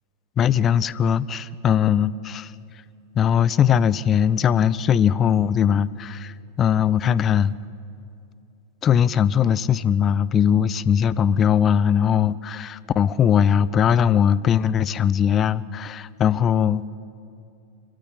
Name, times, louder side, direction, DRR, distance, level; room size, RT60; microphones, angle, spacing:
voice 1, 0.4-2.5 3.2-7.6 8.8-16.9, left 8 dB, 25° left, 19 dB, 0.5 m, -20 dB
26.0 x 15.5 x 8.9 m, 2.6 s
figure-of-eight pair, 90°, 0 cm